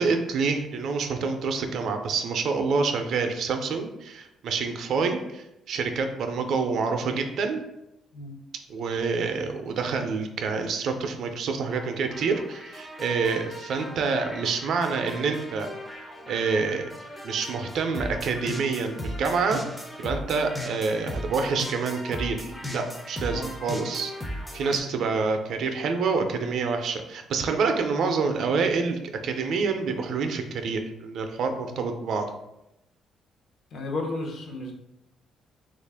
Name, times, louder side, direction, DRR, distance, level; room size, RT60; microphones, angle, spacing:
voice 1, 0.0-7.6 8.7-15.7 16.3-16.9 17.2-19.6 20.0-24.1 24.5-32.3, right 4 dB, 65° right, 5 dB, 0.4 m, -27 dB
sound 1, 11.7-24.8, left 1 dB, 10° left, 0.4 m, -37 dB
voice 2, 33.7-34.7, left 2 dB, 60° left, 2 dB, 0.7 m, -33 dB
3.2 x 2.4 x 3.4 m, 0.88 s
cardioid pair, 125°, 0 cm